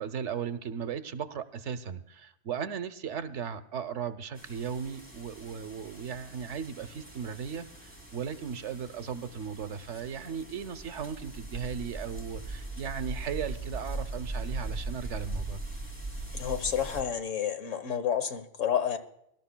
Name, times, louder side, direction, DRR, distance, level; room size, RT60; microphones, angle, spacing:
voice 1, 0.0-15.6, right 7 dB, 75° right, 11 dB, 1.1 m, -36 dB
sound 1, 4.4-17.0, right 2 dB, 10° left, 2.5 m, -40 dB
voice 2, 16.3-19.0, left 8 dB, 90° left, 8 dB, 1.5 m, -30 dB
24.0 x 12.5 x 2.2 m, 0.76 s
omnidirectional pair, 1.3 m